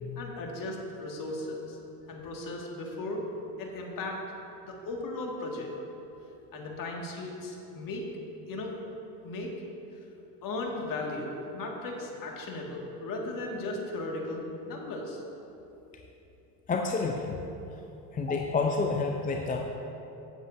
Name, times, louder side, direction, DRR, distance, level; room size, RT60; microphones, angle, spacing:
voice 1, 0.2-1.8 2.1-3.3 3.6-4.2 4.6-5.7 6.5-8.1 8.5-8.7 9.2-9.5 10.4-15.2, left 2 dB, 40° left, 0 dB, 2.0 m, -36 dB
voice 2, 16.7-17.4 18.1-19.6, left 4 dB, 15° left, 2 dB, 0.5 m, -29 dB
16.5 x 7.3 x 2.7 m, 2.9 s
hypercardioid pair, 90°, 49 cm